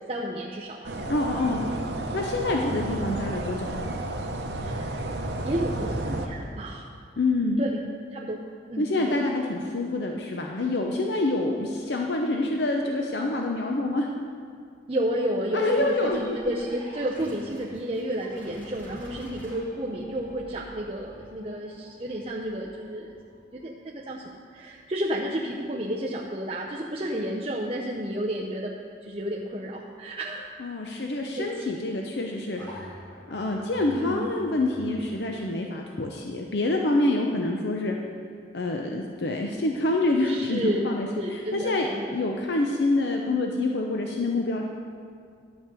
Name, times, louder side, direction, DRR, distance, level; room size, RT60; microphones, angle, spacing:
voice 1, 0.0-0.9 1.5-1.6 2.6-2.8 4.6-5.0 5.4-6.9 7.6-7.8 8.1-8.4 8.7-9.2 14.9-23.1 23.5-28.7 29.0-30.5 31.4-31.8 33.9-34.3 40.2-40.8 41.1-42.1, right 1 dB, 30° right, -3 dB, 0.6 m, -31 dB
sound 1, 0.8-6.3, right 2 dB, 70° right, 0.9 m, -32 dB
voice 2, 1.1-1.7 2.1-3.7 7.2-7.6 8.8-14.1 15.5-16.4 19.2-19.6 30.6-32.6 33.3-38.0 38.5-44.6, left 2 dB, 70° left, 1 dB, 0.7 m, -27 dB
sound 2, 15.8-25.2 32.5-35.4, equal, 10° left, 2.9 m, -47 dB
11.5 x 5.3 x 7.5 m, 2.2 s
head